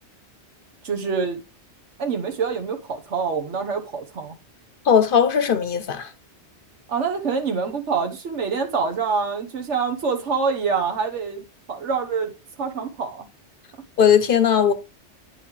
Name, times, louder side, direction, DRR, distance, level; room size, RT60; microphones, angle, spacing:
voice 1, 0.8-1.4 2.0-4.3 6.9-12.3 12.6-13.3, right 5 dB, 85° right, 1.5 m, -26 dB
voice 2, 4.9-6.1 14.0-14.7, left 8 dB, 55° left, 0.8 m, -18 dB
9.1 x 5.5 x 3.2 m
omnidirectional pair, 1.2 m